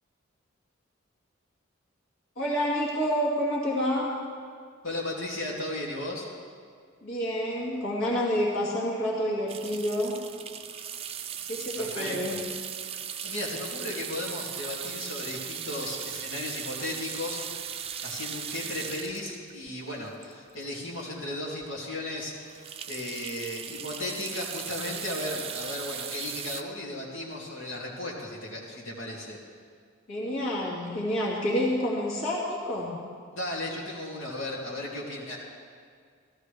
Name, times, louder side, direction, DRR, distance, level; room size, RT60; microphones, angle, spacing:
voice 1, 2.4-4.1 7.0-10.1 11.5-12.4 30.1-33.0, equal, 65° left, -6 dB, 2.4 m, -28 dB
voice 2, 4.8-6.3 11.8-12.4 13.2-17.7 18.0-22.5 22.9-29.4 33.3-35.4, left 1 dB, 90° left, -5 dB, 2.5 m, -35 dB
sound 1, 9.5-20.8 21.3-21.4 21.6-21.8 22.1-26.6, right 8 dB, 30° right, 0.4 m, -38 dB
15.5 x 14.0 x 3.4 m, 2.1 s
head